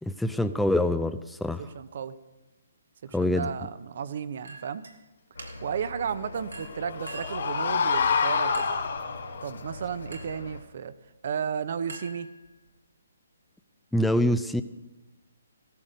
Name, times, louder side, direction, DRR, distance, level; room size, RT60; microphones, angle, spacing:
voice 1, 0.0-1.6 3.1-3.5 13.9-14.6, left 1 dB, ahead, 9 dB, 0.5 m, -25 dB
voice 2, 1.6-2.1 3.2-4.8 5.6-8.7 9.4-10.9 11.2-12.3, right 7 dB, 55° right, 14 dB, 0.9 m, -33 dB
Chink clink, 4.4-5.0 5.4-5.8 6.5-7.5 8.5-8.9 10.1-10.5 11.9-12.7, right 3 dB, 85° right, 2.3 m, -45 dB
sound 1, 5.3-10.6, left 2 dB, 80° left, 1.9 m, -42 dB
sound 2, 6.5-9.5, left 5 dB, 60° left, 3.5 m, -27 dB
15.0 x 13.0 x 5.2 m, 1.1 s
hypercardioid pair, 145°, 0 cm